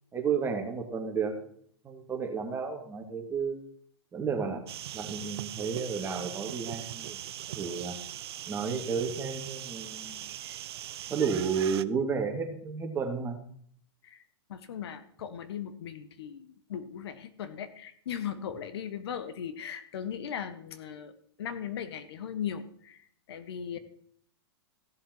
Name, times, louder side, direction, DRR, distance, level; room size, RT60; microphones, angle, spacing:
voice 1, 0.1-1.3 1.8-3.6 4.1-4.6 4.9-7.2 7.5-8.0 8.4-10.3 11.1-13.4, right 6 dB, 15° right, 2 dB, 2.4 m, -32 dB
sound 1, 4.7-11.8, right 12 dB, 70° right, 0.6 m, -40 dB
voice 2, 14.5-21.1 21.4-23.8, left 8 dB, 75° left, 12 dB, 1.3 m, -38 dB
15.5 x 7.1 x 4.6 m, 0.63 s
hypercardioid pair, 125°, 14 cm